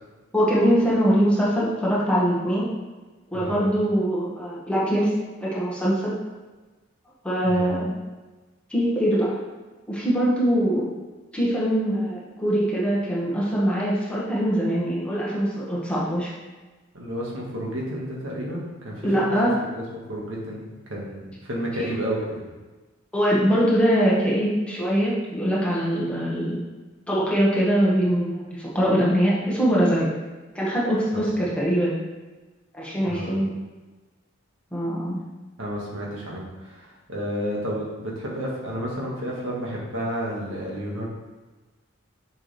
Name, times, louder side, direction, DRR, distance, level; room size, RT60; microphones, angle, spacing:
voice 1, 0.3-2.7 3.3-5.1 5.4-6.1 7.2-7.8 8.7-9.3 9.9-10.9 11.3-16.3 19.0-19.6 21.8-21.9 23.1-26.6 27.1-30.1 30.5-32.0 32.7-33.5 34.7-35.2, equal, 5° left, -7 dB, 1.7 m, -22 dB
voice 2, 3.3-3.7 7.5-7.7 16.9-19.3 19.7-19.8 20.1-21.2 21.5-22.5 31.1-31.4 33.0-33.5 35.6-41.1, equal, 75° right, -3 dB, 1.9 m, -31 dB
7.0 x 6.8 x 3.4 m, 1.2 s
head